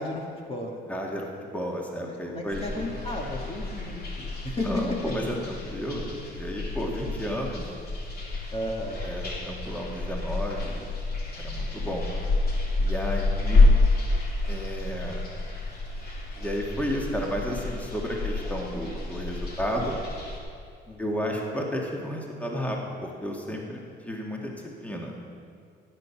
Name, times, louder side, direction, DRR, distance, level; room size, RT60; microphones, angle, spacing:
voice 1, 0.0-0.8 2.0-5.0 8.5-9.0 20.9-21.2, left 1 dB, 30° left, -1 dB, 2.0 m, -34 dB
voice 2, 0.9-2.6 4.6-7.6 9.0-10.8 11.4-12.1 12.8-13.7 14.5-15.2 16.4-20.0 21.0-24.5 24.8-25.2, equal, 5° left, -1 dB, 2.1 m, -32 dB
sound 1, 2.5-20.4, left 2 dB, 50° left, 2.9 m, -28 dB
16.0 x 8.9 x 5.9 m, 2.3 s
cardioid pair, 90°, 20 cm